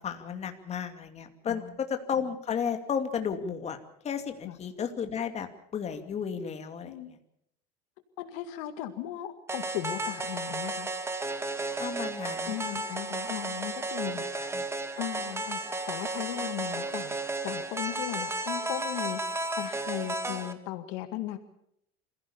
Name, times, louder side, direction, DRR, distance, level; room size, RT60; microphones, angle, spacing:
voice 1, 0.0-3.8 4.0-5.5 5.7-7.2 11.8-12.6 14.3-14.6, left 7 dB, 35° left, 6 dB, 2.6 m, -33 dB
voice 2, 8.2-10.9 12.4-14.2 15.0-15.6 15.9-17.2 17.4-21.4, left 14 dB, 75° left, 9 dB, 2.0 m, -37 dB
sound 1, 9.5-20.5, right 2 dB, 15° right, 1.9 m, -33 dB
26.5 x 16.0 x 7.1 m, 0.74 s
supercardioid pair, 115°, 20 cm